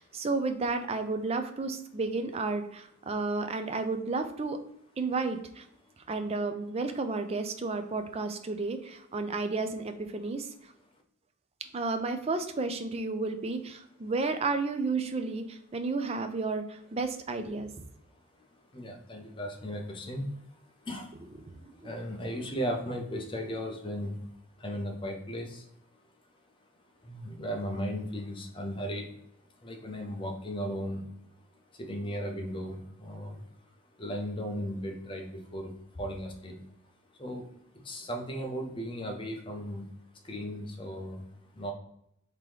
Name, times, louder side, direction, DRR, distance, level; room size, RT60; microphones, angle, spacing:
voice 1, 0.0-4.6 5.0-5.6 6.1-10.7 11.7-17.7 21.5-21.9, right 3 dB, 25° right, 7 dB, 0.3 m, -32 dB
voice 2, 18.7-21.2 21.6-24.3 24.6-25.7 27.0-29.1 29.6-31.0 31.7-33.4 34.0-36.6 37.2-37.5 37.7-39.9 40.2-41.3 41.5-41.7, equal, 25° left, 2 dB, 0.6 m, -36 dB
3.7 x 2.9 x 3.2 m, 0.75 s
head